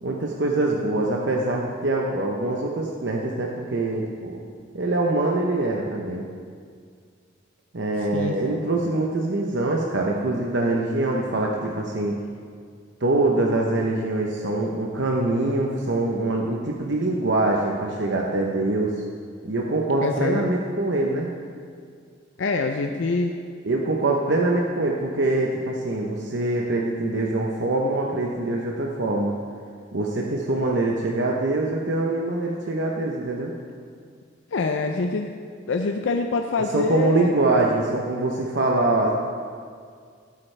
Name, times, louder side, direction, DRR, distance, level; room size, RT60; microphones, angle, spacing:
voice 1, 0.0-4.4 4.7-6.2 7.7-12.2 13.0-18.9 19.4-21.3 23.6-29.3 29.9-33.5 36.7-39.1, right 2 dB, 65° right, -1 dB, 0.8 m, -24 dB
voice 2, 8.0-8.7 20.0-20.5 22.4-23.3 34.5-35.3 35.7-37.3, left 3 dB, 75° left, 4 dB, 0.5 m, -25 dB
16.0 x 8.6 x 3.3 m, 2.1 s
head